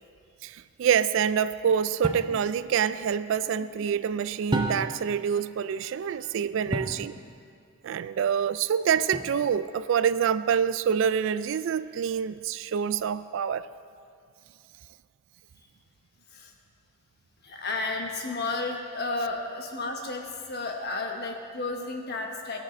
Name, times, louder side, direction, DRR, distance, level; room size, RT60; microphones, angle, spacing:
voice 1, 0.4-7.1 7.8-13.7, right 7 dB, 60° right, 14 dB, 0.3 m, -26 dB
sound 1, 2.0-2.4 4.5-5.1 6.7-7.1 9.1-9.6, right 2 dB, 20° right, 0.7 m, -31 dB
voice 2, 17.4-22.6, left 3 dB, 50° left, 2 dB, 1.2 m, -33 dB
18.0 x 6.6 x 4.4 m, 2.5 s
head